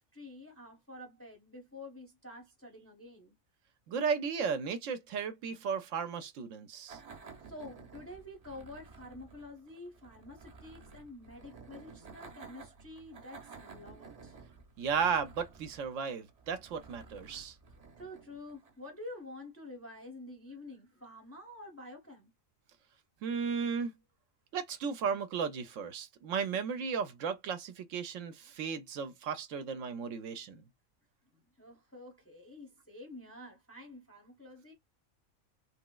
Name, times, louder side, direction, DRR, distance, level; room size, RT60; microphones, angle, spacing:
voice 1, 0.0-3.3 7.4-14.4 18.0-22.3 31.6-34.7, left 2 dB, 15° left, 0.6 m, -49 dB
voice 2, 3.9-7.0 14.8-17.5 23.2-23.9 24.5-30.6, right 6 dB, 70° right, 0.9 m, -35 dB
sound 1, 6.9-19.1, right 4 dB, 35° right, 0.7 m, -53 dB
3.2 x 3.0 x 2.2 m
omnidirectional pair, 1.4 m